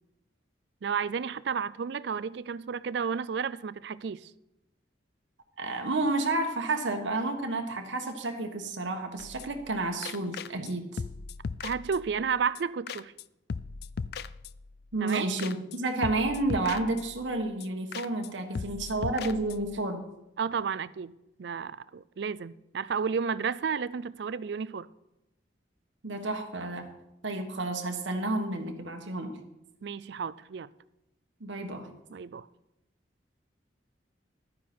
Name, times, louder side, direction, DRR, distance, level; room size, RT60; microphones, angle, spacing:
voice 1, 0.8-4.3 11.6-13.1 15.0-15.3 20.4-24.9 29.8-30.7 32.1-32.5, right 6 dB, 65° right, 0.4 m, -32 dB
voice 2, 5.6-11.0 14.9-20.0 26.0-26.9 27.2-29.4 31.4-31.9, right 2 dB, 80° right, 1.3 m, -31 dB
sound 1, 9.2-9.7 10.0-10.7 11.0-12.3 12.6-12.7 12.9-13.2 13.5-14.8 15.1-15.2 15.4-15.8 16.0-17.3 17.6-17.7 17.9-18.3 18.6-19.8, left 5 dB, 55° left, 0.3 m, -38 dB
12.0 x 9.5 x 4.3 m
head